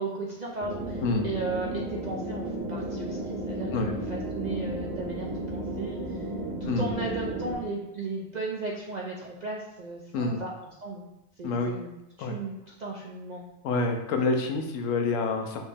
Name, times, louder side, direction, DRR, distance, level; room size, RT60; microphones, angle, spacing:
voice 1, 0.0-6.3 6.6-10.5 10.8-11.1 11.4-11.9 12.2-12.5 12.8-13.4, right 3 dB, 60° right, -2 dB, 0.4 m, -35 dB
sound 1, 0.6-7.5, right 1 dB, 75° right, 1.6 m, -34 dB
voice 2, 11.4-11.7 12.2-12.3 13.6-15.6, left 3 dB, 75° left, 4 dB, 1.0 m, -27 dB
4.7 x 3.1 x 3.4 m, 0.89 s
omnidirectional pair, 1.4 m